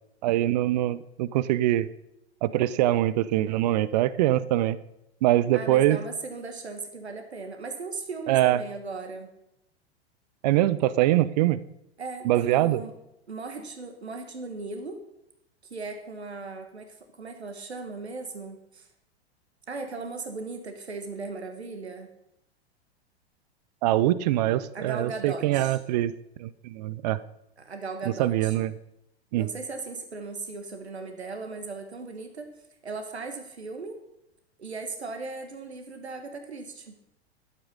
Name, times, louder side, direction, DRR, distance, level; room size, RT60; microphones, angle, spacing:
voice 1, 0.2-1.9 2.4-4.8 5.2-6.0 8.3-8.6 10.4-11.6 12.2-12.8 23.8-26.1 26.4-27.2 28.2-28.7 29.3-29.5, right 14 dB, 40° right, 17 dB, 0.6 m, -23 dB
voice 2, 5.5-9.3 12.0-13.0 13.3-15.0 15.7-18.9 19.7-22.1 24.7-25.8 27.6-28.6 29.3-32.5 32.8-34.0 34.6-36.9, right 3 dB, 75° right, 6 dB, 1.4 m, -37 dB
11.5 x 7.9 x 5.4 m, 0.85 s
figure-of-eight pair, 95°, 33 cm